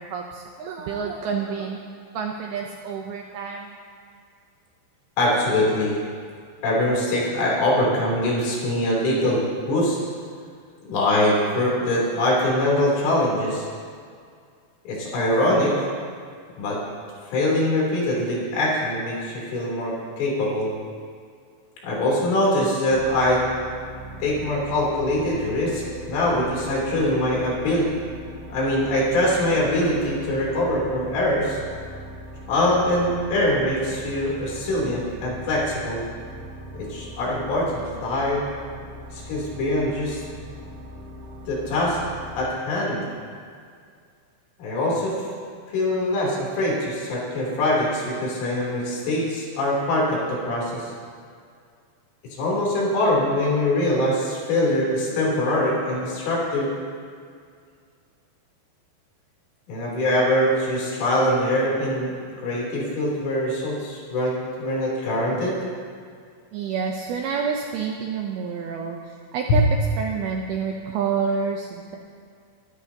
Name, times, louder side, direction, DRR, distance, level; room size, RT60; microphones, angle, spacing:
voice 1, 0.0-1.9 2.1-3.8 66.5-69.6 70.0-72.0, right 6 dB, 80° right, 1 dB, 2.2 m, -28 dB
voice 2, 5.2-6.0 6.6-10.0 10.9-13.7 14.9-15.7 16.6-16.8 17.3-20.7 21.8-23.4 24.2-27.9 28.5-31.6 32.5-36.0 36.7-38.4 39.1-40.2 41.5-42.0 42.4-43.0 44.6-45.2 45.7-50.9 52.2-56.7 59.7-62.1 62.4-65.6, left 1 dB, 85° left, -5 dB, 6.0 m, -23 dB
sound 1, 22.9-42.5, equal, 60° right, 3.2 m, -40 dB
24.5 x 13.0 x 2.9 m, 2.2 s
omnidirectional pair, 5.5 m